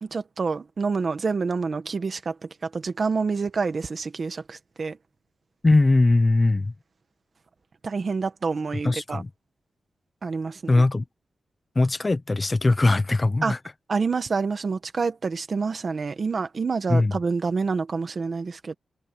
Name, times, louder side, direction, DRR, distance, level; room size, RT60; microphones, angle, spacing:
voice 1, 0.0-5.0 7.8-9.2 10.2-10.8 13.4-13.5 13.9-18.7, right 4 dB, 40° right, 1.6 m, -27 dB
voice 2, 5.6-6.7 8.8-9.3 10.7-11.0 11.7-13.6 16.9-17.1, left 2 dB, 20° left, 0.9 m, -20 dB
wide cardioid pair, 165°, 0 cm